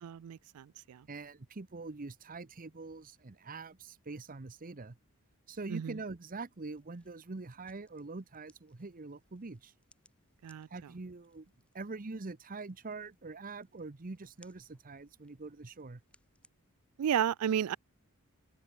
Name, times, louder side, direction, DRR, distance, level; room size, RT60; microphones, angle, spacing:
voice 1, 0.0-1.0 5.7-5.9 10.4-10.7 17.0-17.8, right 9 dB, 85° right, 0.4 m, -32 dB
voice 2, 1.1-5.0 5.5-9.7 10.7-16.0, right 3 dB, 40° right, 0.8 m, -44 dB
sound 1, 6.7-16.5, left 1 dB, 5° left, 4.4 m, -70 dB
open air
head